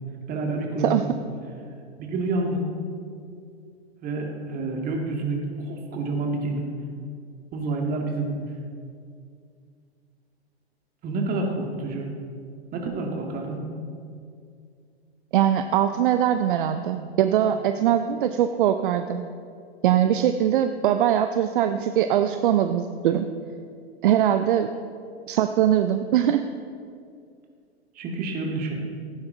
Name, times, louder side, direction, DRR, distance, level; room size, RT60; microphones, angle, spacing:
voice 1, 0.3-1.1 2.0-2.7 4.0-6.7 7.5-8.5 11.0-12.1 12.7-13.6 28.0-28.8, right 2 dB, 25° right, 1 dB, 2.0 m, -28 dB
voice 2, 15.3-19.2 19.8-23.3 24.0-24.7 25.3-26.5, right 10 dB, 55° right, 8 dB, 0.6 m, -21 dB
16.0 x 9.5 x 3.9 m, 2.3 s
figure-of-eight pair, 105°, 32 cm